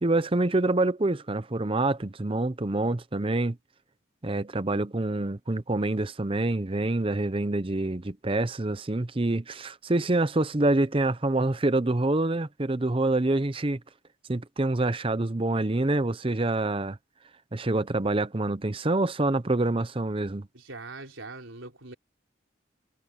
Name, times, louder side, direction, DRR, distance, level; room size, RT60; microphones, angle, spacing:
voice 1, 0.0-3.6 4.2-13.8 14.3-17.0 17.5-20.5, right 2 dB, 25° right, 0.7 m, -26 dB
voice 2, 20.5-21.9, right 3 dB, 75° right, 4.1 m, -42 dB
head